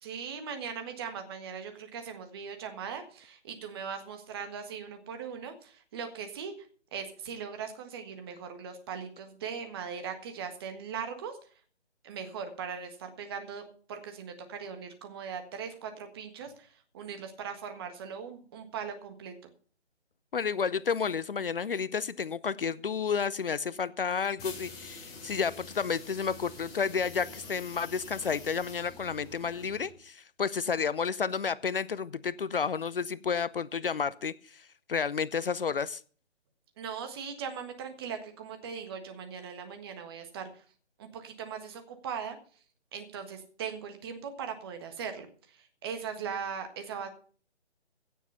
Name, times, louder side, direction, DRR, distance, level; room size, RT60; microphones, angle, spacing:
voice 1, 0.0-6.5 6.9-11.4 12.0-13.6 13.9-19.3 36.8-40.6 41.0-42.4 42.9-47.1, right 6 dB, 20° right, 6 dB, 1.6 m, -39 dB
voice 2, 20.3-36.0, left 6 dB, 55° left, 18 dB, 0.6 m, -31 dB
sound 1, 24.4-30.0, left 3 dB, 10° left, 1.8 m, -46 dB
16.5 x 7.4 x 5.6 m, 0.44 s
figure-of-eight pair, 155°, 34 cm